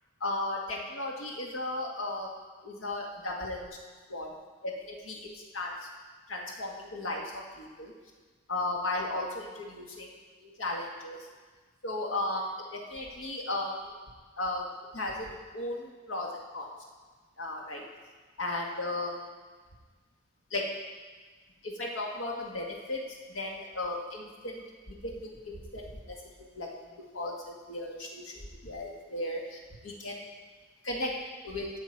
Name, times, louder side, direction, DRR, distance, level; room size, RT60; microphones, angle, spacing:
voice 1, 0.2-2.3 2.6-3.7 4.1-4.3 4.6-5.2 5.5-5.7 6.3-7.9 8.5-10.1 10.4-11.2 11.8-13.8 14.4-14.7 14.9-15.3 15.5-16.3 16.5-16.7 17.4-17.8 18.4-19.2 20.5-20.6 21.6-23.0 23.3-24.6 25.0-26.7 27.1-29.6 29.8-30.1 30.8-31.1 31.4-31.7, left 2 dB, 90° left, -1 dB, 1.8 m, -35 dB
16.0 x 6.0 x 4.6 m, 1.4 s
head